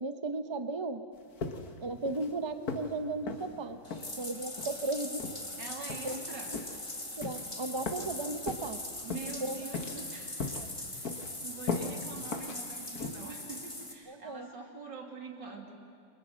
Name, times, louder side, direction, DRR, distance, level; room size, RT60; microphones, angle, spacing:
voice 1, 0.0-1.0 1.8-3.8 4.2-5.2 6.0-6.2 7.2-8.8 9.4-9.6 10.6-10.7 14.1-14.5, right 3 dB, 20° right, 9 dB, 0.7 m, -35 dB
sound 1, 1.4-1.8 2.1-2.3 2.7-2.9 3.3-3.5 3.9-4.1 4.6-4.8 5.2-5.4 5.9-6.2 6.5-6.8 7.2-7.4 7.9-8.1 8.5-8.7 9.1-9.4 9.7-10.1 10.4-10.7 11.0-11.3 11.7-11.9 12.3-12.6 13.0-13.1, left 4 dB, 60° left, 2.0 m, -37 dB
Bathtub (filling or washing), 3.8-13.9, left 1 dB, 15° left, 2.2 m, -41 dB
voice 2, 5.6-6.5 9.0-10.5 10.9-11.1 11.4-15.9, right 4 dB, 85° right, 2 dB, 3.4 m, -44 dB
29.0 x 24.0 x 6.5 m, 2.2 s
omnidirectional pair, 1.9 m